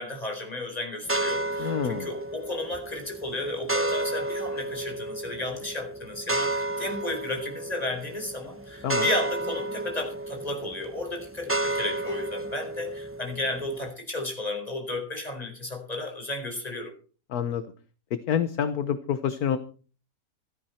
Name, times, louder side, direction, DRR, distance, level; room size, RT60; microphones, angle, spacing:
voice 1, 0.0-16.9, left 2 dB, 20° left, 4 dB, 4.6 m, -33 dB
sound 1, 1.0-13.9, right 2 dB, 10° right, 0.9 m, -32 dB
voice 2, 1.6-2.1 8.8-9.1 17.3-17.6 18.1-19.6, left 8 dB, 65° left, 11 dB, 1.3 m, -27 dB
16.5 x 13.0 x 4.3 m, 0.38 s
omnidirectional pair, 1.8 m